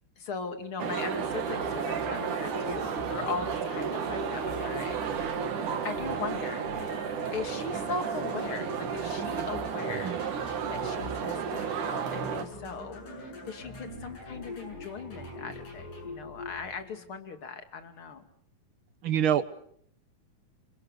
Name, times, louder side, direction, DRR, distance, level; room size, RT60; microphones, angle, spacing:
voice 1, 0.2-5.4 5.8-6.7 7.3-18.2, left 4 dB, 45° left, 7 dB, 3.2 m, -39 dB
sound 1, 0.8-12.4, right 7 dB, 75° right, 3.5 m, -33 dB
sound 2, 1.2-17.1, left 1 dB, 85° left, 8.8 m, -43 dB
voice 2, 19.0-19.5, right 9 dB, 55° right, 13 dB, 1.5 m, -25 dB
27.5 x 25.5 x 6.6 m, 0.64 s
omnidirectional pair, 3.7 m